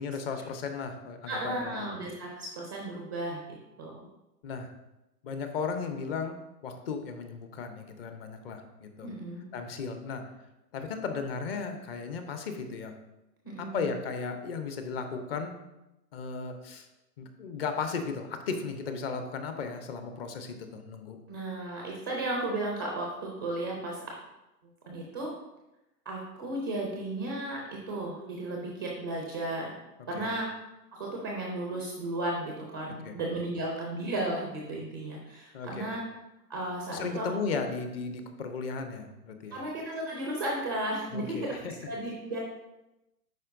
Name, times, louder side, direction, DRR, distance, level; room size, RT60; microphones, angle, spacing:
voice 1, 0.0-2.0 4.4-4.7 5.2-6.4 6.6-9.1 9.5-10.2 10.7-12.9 13.6-15.5 16.1-16.9 17.2-21.2 30.1-30.3 33.0-33.2 35.5-35.9 36.9-39.6 41.1-41.7, left 5 dB, 35° left, 6 dB, 0.8 m, -35 dB
voice 2, 1.3-3.4 3.8-4.1 9.0-9.4 13.4-14.0 21.3-24.0 24.9-25.3 26.1-29.7 30.1-30.4 30.9-36.0 36.5-37.5 39.5-42.4, right 1 dB, 15° right, -2 dB, 0.3 m, -34 dB
10.5 x 4.3 x 2.6 m, 0.94 s
hypercardioid pair, 130°, 50 cm